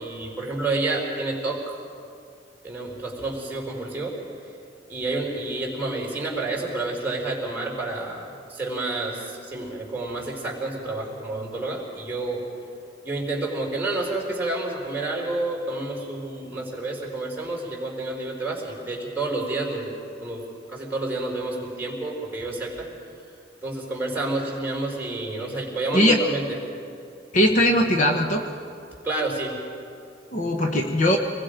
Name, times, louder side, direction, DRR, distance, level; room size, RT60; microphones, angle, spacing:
voice 1, 0.0-1.8 2.6-4.2 4.9-12.5 13.0-19.9 20.2-22.9 23.6-26.6 29.0-29.6, right 2 dB, 10° right, -2 dB, 4.1 m, -29 dB
voice 2, 27.3-28.4 30.3-31.2, equal, 45° left, 3 dB, 1.2 m, -20 dB
26.5 x 20.0 x 5.2 m, 2.5 s
head